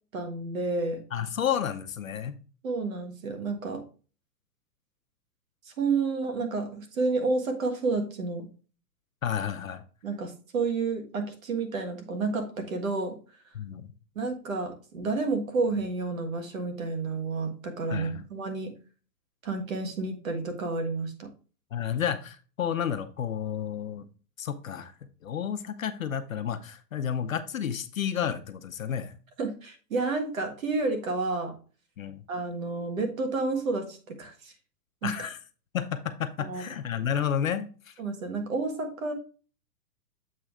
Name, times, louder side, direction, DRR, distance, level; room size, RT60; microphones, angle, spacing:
voice 1, 0.1-1.0 2.6-3.8 5.8-8.5 10.0-13.2 14.2-18.7 19.4-21.3 29.4-31.6 32.3-34.5 35.0-35.1 36.5-36.7 38.0-39.1, right 3 dB, 50° right, 1.6 m, -30 dB
voice 2, 1.1-2.3 9.2-9.8 13.5-13.9 17.9-18.2 21.7-24.1 24.4-24.9 25.2-29.1 32.0-32.2 35.0-35.4 35.7-37.9, left 8 dB, 55° left, 0.7 m, -31 dB
7.7 x 3.3 x 4.7 m
hypercardioid pair, 180°, 50 cm